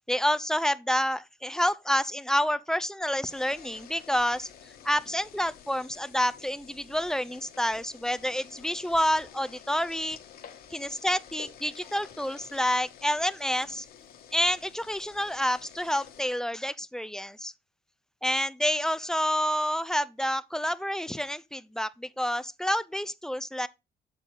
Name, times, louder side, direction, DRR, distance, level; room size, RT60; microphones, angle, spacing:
voice 1, 0.1-4.5 4.8-10.2 10.7-13.9 14.3-17.5 18.2-23.7, equal, 5° left, 0.4 m, -28 dB
sound 1, 3.3-16.3, left 9 dB, 60° left, 1.4 m, -50 dB
8.4 x 4.0 x 4.7 m
cardioid pair, 110°, 17 cm